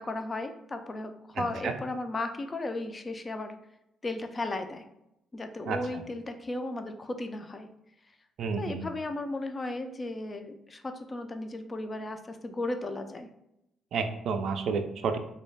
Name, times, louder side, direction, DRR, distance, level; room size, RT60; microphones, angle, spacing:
voice 1, 0.0-3.5 4.0-4.8 5.3-7.7 8.6-13.3, left 2 dB, 30° left, 7 dB, 0.3 m, -35 dB
voice 2, 1.4-1.7 5.7-5.8 8.4-8.9 13.9-15.2, right 5 dB, 70° right, 6 dB, 0.3 m, -30 dB
2.3 x 2.1 x 3.2 m, 0.81 s
cardioid pair, 90°, 0 cm